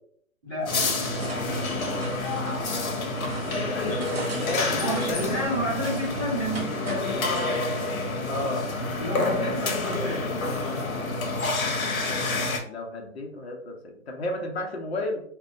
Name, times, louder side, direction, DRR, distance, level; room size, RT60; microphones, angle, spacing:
voice 1, 0.4-0.8 3.8-4.0 4.8-6.8 9.0-10.3, equal, 10° right, -14 dB, 0.7 m, -30 dB
sound 1, 0.6-7.6, right 3 dB, 50° right, 0.4 m, -40 dB
sound 2, 0.7-12.6, left 2 dB, 80° left, 0.8 m, -28 dB
voice 2, 3.6-5.5 8.3-8.7 9.9-10.1 12.6-15.2, left 2 dB, 50° left, 2 dB, 0.6 m, -32 dB
2.6 x 2.1 x 2.5 m, 0.67 s
hypercardioid pair, 165°, 41 cm